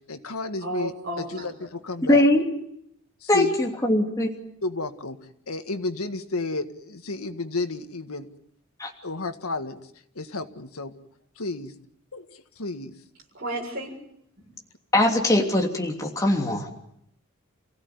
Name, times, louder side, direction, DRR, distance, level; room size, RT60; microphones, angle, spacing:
voice 1, 0.1-2.2 3.2-3.5 4.6-5.2 5.5-8.3 9.0-9.8 10.1-10.9 11.4-11.7 12.1-12.2 12.6-12.9, left 3 dB, 90° left, 8 dB, 1.8 m, -31 dB
voice 2, 0.6-1.5 13.3-13.9 14.4-14.5, right 1 dB, 45° right, 0 dB, 6.9 m, -32 dB
voice 3, 2.1-2.4 3.3-4.3 8.8-8.9 14.9-16.7, left 1 dB, 15° left, 1 dB, 3.0 m, -21 dB
29.0 x 16.5 x 9.6 m, 0.75 s
head